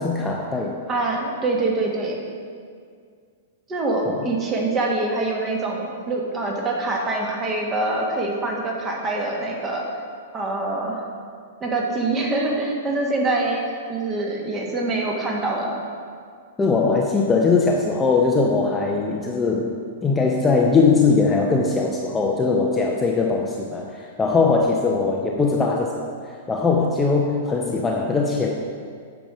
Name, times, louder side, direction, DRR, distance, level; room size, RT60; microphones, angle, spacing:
voice 1, 0.0-0.8 4.0-4.3 16.6-28.5, left 4 dB, 10° left, 0 dB, 0.7 m, -21 dB
voice 2, 0.9-2.2 3.7-9.9 10.3-11.0 11.6-13.6 13.9-15.8, right 2 dB, 20° right, -1 dB, 1.7 m, -24 dB
8.8 x 6.0 x 5.0 m, 2.1 s
figure-of-eight pair, 105°, 0 cm